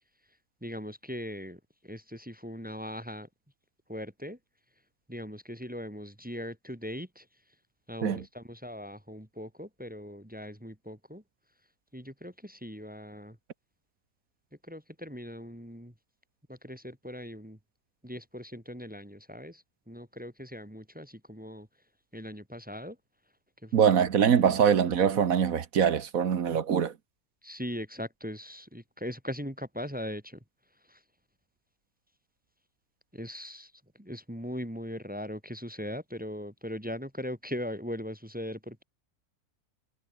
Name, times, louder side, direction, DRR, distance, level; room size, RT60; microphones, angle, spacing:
voice 1, 0.6-3.3 3.9-4.4 5.1-7.3 7.9-11.2 11.9-13.4 14.7-15.9 16.5-17.6 18.0-21.7 22.1-23.0 23.6-23.9 27.4-30.4 30.9-31.0 33.1-33.7 34.0-38.8, equal, 5° right, 1.9 m, -40 dB
voice 2, 23.7-26.9, right 7 dB, 65° right, 1.6 m, -23 dB
omnidirectional pair, 1.6 m